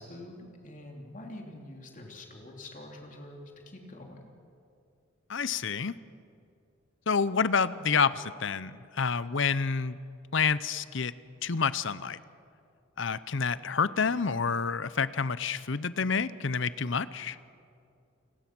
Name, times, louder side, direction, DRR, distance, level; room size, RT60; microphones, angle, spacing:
voice 1, 0.0-4.3, left 1 dB, 40° left, 1 dB, 3.0 m, -46 dB
voice 2, 5.3-5.9 7.1-10.0 10.3-11.1 11.4-12.2 13.0-17.4, left 5 dB, 60° left, 16 dB, 0.7 m, -28 dB
29.0 x 19.0 x 6.1 m, 2.5 s
head